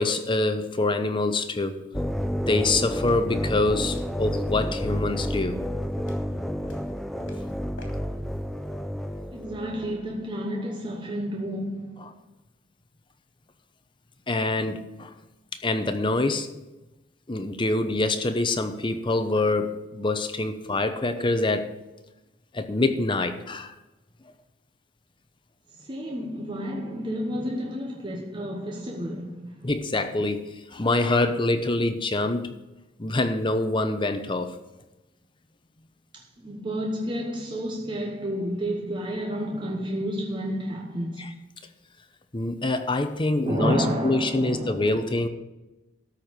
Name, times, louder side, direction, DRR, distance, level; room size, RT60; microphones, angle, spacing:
voice 1, 0.0-1.8 2.5-5.6 14.3-15.1 15.6-16.5 17.3-21.7 22.5-23.7 29.6-32.5 33.0-34.5 42.3-45.3, left 2 dB, 25° left, 0.8 m, -25 dB
sound 1, 1.9-10.0, equal, ahead, 0.4 m, -30 dB
sound 2, 3.0-3.2 3.9-5.1 5.5-6.4 6.6-7.5 7.8-7.9, left 2 dB, 80° left, 2.9 m, -49 dB
voice 2, 9.3-12.2 25.7-29.7 36.1-41.3 43.4-44.9, equal, 25° right, 1.0 m, -31 dB
13.0 x 4.6 x 8.7 m
head